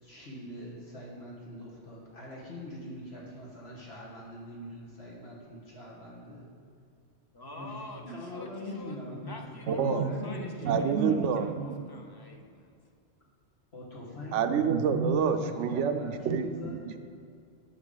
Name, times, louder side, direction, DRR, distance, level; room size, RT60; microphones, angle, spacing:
voice 1, 0.0-6.5 7.6-7.8 8.0-11.5 13.7-14.4 14.9-16.9, left 1 dB, 65° left, -5 dB, 1.9 m, -42 dB
voice 2, 7.3-12.8, left 2 dB, 25° left, 3 dB, 0.6 m, -47 dB
voice 3, 9.7-10.1 10.6-11.7 14.3-16.7, right 6 dB, 85° right, 8 dB, 0.9 m, -27 dB
10.5 x 6.9 x 3.9 m, 2.3 s
omnidirectional pair, 1.2 m